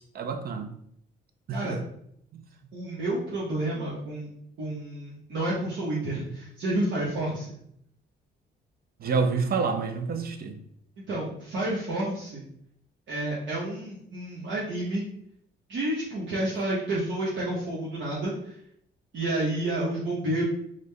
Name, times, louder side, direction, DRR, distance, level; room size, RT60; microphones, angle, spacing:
voice 1, 0.1-0.7 1.5-1.8 2.3-2.4 9.0-10.6, right 4 dB, 50° right, 7 dB, 0.5 m, -28 dB
voice 2, 2.7-4.3 4.6-7.6 11.1-12.5 13.1-15.0 15.7-18.5 19.1-20.5, right 1 dB, 65° right, -7 dB, 1.0 m, -30 dB
3.8 x 2.1 x 3.3 m, 0.70 s
cardioid pair, 90°, 20 cm